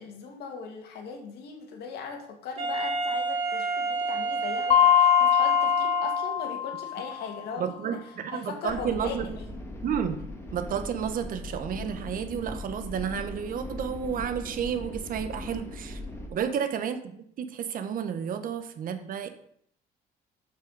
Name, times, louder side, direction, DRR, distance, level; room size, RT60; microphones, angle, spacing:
voice 1, 0.0-8.0 8.3-9.4, left 5 dB, 75° left, 3 dB, 2.1 m, -39 dB
Wind instrument woodwind instrument, 2.6-6.5, right 3 dB, 35° right, 3.6 m, -30 dB
Mallet percussion, 4.7-7.3, left 10 dB, 35° left, 0.6 m, -22 dB
voice 2, 7.6-9.4 9.8-10.2 10.5-16.0 16.3-19.3, right 8 dB, 55° right, 9 dB, 1.1 m, -31 dB
sound 1, 8.7-16.3, left 1 dB, 15° left, 1.9 m, -39 dB
7.4 x 7.4 x 4.8 m, 0.66 s
cardioid pair, 110°, 17 cm